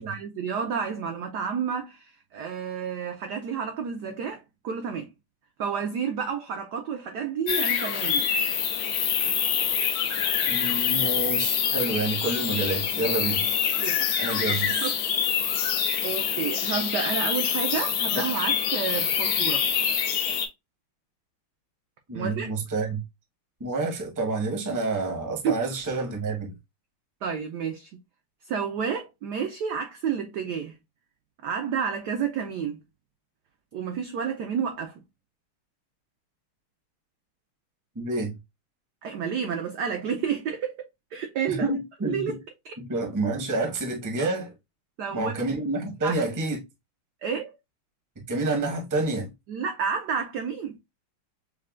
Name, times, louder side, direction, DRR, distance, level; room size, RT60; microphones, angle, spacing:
voice 1, 0.0-5.1 5.6-8.3 13.8-14.1 14.4-15.4 16.0-19.7 22.1-22.5 25.4-25.6 27.2-27.9 28.5-30.7 31.4-32.8 33.7-34.9 39.0-42.4 42.6-42.7 45.0-45.4 46.0-46.1 47.2-47.5 49.5-50.8, right 7 dB, 80° right, 0.9 m, -30 dB
sound 1, 7.5-20.5, left 8 dB, 80° left, 0.8 m, -26 dB
voice 2, 10.4-13.4 14.2-14.8 22.1-23.0 23.6-26.5 37.9-38.3 41.5-42.4 42.8-44.5 45.1-46.6 48.3-49.3, right 2 dB, 20° right, 0.5 m, -28 dB
6.4 x 2.2 x 2.3 m
omnidirectional pair, 2.4 m